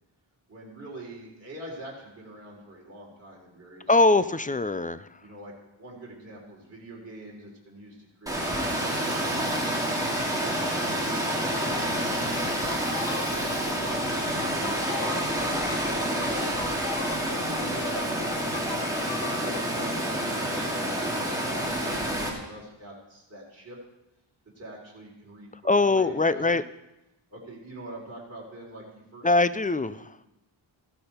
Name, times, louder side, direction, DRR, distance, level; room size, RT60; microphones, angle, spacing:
voice 1, 0.5-4.3 5.2-12.3 13.1-16.0 16.3-16.5 16.8-23.8 24.6-26.6 27.3-28.8 29.1-29.3, right 1 dB, 30° right, -4 dB, 3.6 m, -44 dB
voice 2, 3.9-5.2 10.5-10.8 25.6-26.6 29.2-30.2, left 3 dB, 20° left, 14 dB, 0.3 m, -23 dB
Water, 8.3-22.3, right 1 dB, 5° right, 2.5 m, -28 dB
sound 1, 11.7-19.5, left 6 dB, 65° left, 1.1 m, -39 dB
15.5 x 12.0 x 4.3 m, 0.93 s
wide cardioid pair, 105°, 48 cm